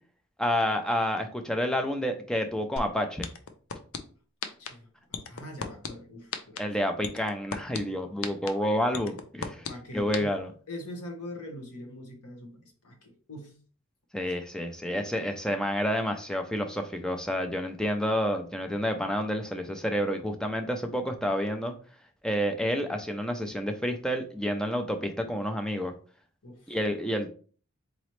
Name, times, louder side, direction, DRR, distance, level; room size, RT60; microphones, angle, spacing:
voice 1, 0.4-3.3 6.6-9.7 9.9-10.5 14.1-21.7 22.2-25.9 26.7-27.3, equal, 5° left, 5 dB, 0.4 m, -29 dB
sound 1, 2.8-2.9 3.2-4.0 4.4-4.7 5.1-5.9 6.3-6.6 7.0-7.8 8.2-8.5 8.9-9.7 10.1-10.2, left 6 dB, 70° left, 0.5 m, -33 dB
voice 2, 4.4-6.7 9.7-10.3 10.7-13.6 14.2-14.3 26.4-26.8, left 1 dB, 90° left, 3 dB, 1.1 m, -43 dB
4.0 x 3.0 x 3.1 m, 0.41 s
head